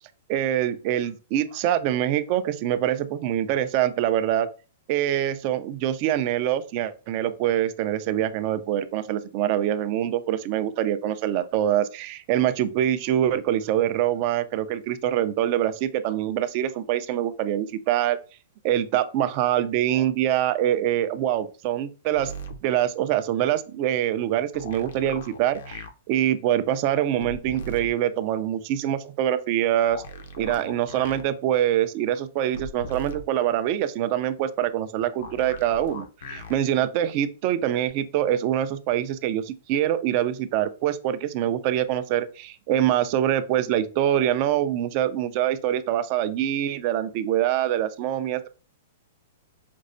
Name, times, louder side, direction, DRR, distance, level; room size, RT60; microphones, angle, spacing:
voice 1, 0.3-4.5 4.9-18.2 18.6-22.3 22.6-30.0 30.4-48.5, right 11 dB, 35° right, 12 dB, 0.3 m, -24 dB
sound 1, 22.2-22.6 24.5-25.9 27.2-27.9 29.9-31.2 32.5-33.2 35.2-36.6 37.9-38.0, equal, 70° left, 0.5 m, -38 dB
5.2 x 2.0 x 2.5 m, 0.34 s
hypercardioid pair, 160°, 0 cm